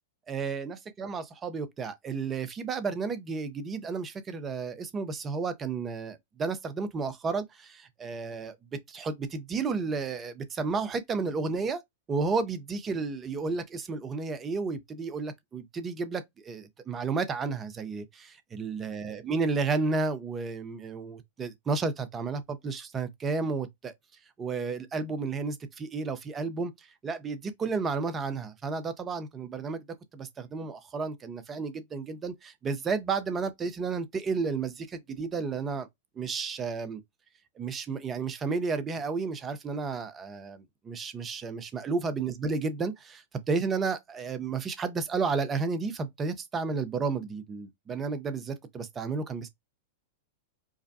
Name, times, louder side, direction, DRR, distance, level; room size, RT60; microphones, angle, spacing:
voice 1, 0.3-11.8 12.1-23.9 24.4-29.8 30.1-35.9 36.2-37.0 37.6-49.5, right 4 dB, 25° right, 0.8 m, -32 dB
4.8 x 2.2 x 2.7 m
hypercardioid pair, 110°, 0 cm